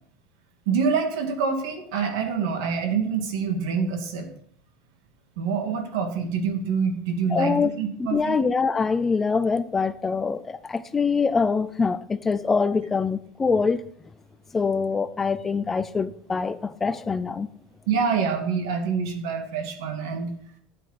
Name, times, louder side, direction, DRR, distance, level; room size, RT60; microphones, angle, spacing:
voice 1, 0.7-4.3 5.4-8.4 17.9-20.3, right 5 dB, 90° right, 2.5 m, -26 dB
voice 2, 7.3-7.7 8.0-13.8 14.5-17.5, left 5 dB, 10° left, 0.4 m, -24 dB
12.5 x 8.4 x 4.3 m
cardioid pair, 180°, 2 cm